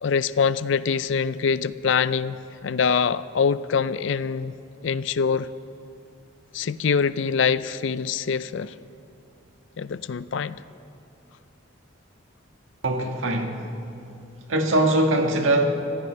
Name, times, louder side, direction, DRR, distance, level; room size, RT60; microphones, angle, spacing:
voice 1, 0.0-2.4 2.6-4.5 4.8-5.5 6.5-8.7 9.8-10.6, left 6 dB, 70° left, 16 dB, 0.4 m, -24 dB
voice 2, 12.8-13.7 14.5-15.8, right 1 dB, 80° right, 3 dB, 1.6 m, -22 dB
24.5 x 16.0 x 3.3 m, 2.8 s
head